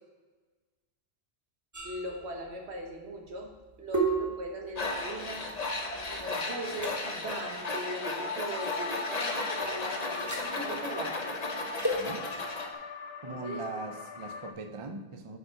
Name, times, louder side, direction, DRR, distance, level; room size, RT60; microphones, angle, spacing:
sound 1, 1.7-6.2 6.7-6.9 8.6-8.9 10.1-10.5 11.7-12.0, right 3 dB, 15° right, 1.1 m, -34 dB
voice 1, 1.8-3.5 3.8-5.5 6.1-11.2 13.3-13.6, right 1 dB, 85° right, 2 dB, 1.5 m, -39 dB
Tools, 4.8-12.7, left 2 dB, 40° left, 1.0 m, -35 dB
sound 2, 8.1-14.5, left 6 dB, 75° left, 0.8 m, -41 dB
voice 2, 13.2-15.4, right 3 dB, 35° right, 6 dB, 0.6 m, -40 dB
8.0 x 5.5 x 4.7 m, 1.3 s
omnidirectional pair, 1.1 m